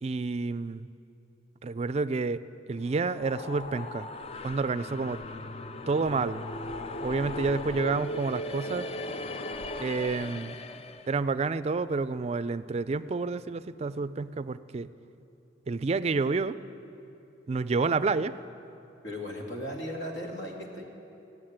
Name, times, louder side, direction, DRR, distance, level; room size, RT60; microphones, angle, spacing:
voice 1, 0.0-0.9 1.6-4.1 4.4-5.2 5.9-6.4 7.0-8.9 9.8-10.6 11.1-14.9 15.7-16.6 17.5-18.4, right 4 dB, 35° right, 13 dB, 0.4 m, -29 dB
sound 1, 2.8-11.2, left 1 dB, 35° left, 0.4 m, -38 dB
voice 2, 19.0-20.8, equal, 80° left, 0 dB, 2.4 m, -36 dB
15.5 x 9.5 x 8.8 m, 2.9 s
head